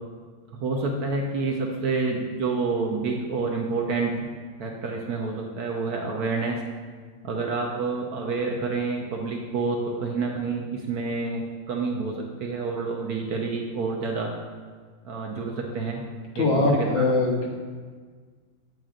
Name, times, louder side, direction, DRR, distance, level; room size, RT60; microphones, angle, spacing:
voice 1, 0.5-4.3 4.6-6.6 7.2-14.3 15.0-16.0 16.4-17.0, right 4 dB, 65° right, 0 dB, 1.1 m, -28 dB
voice 2, 16.4-17.5, left 2 dB, 75° left, -1 dB, 1.9 m, -22 dB
8.7 x 7.9 x 2.5 m, 1.5 s
omnidirectional pair, 2.1 m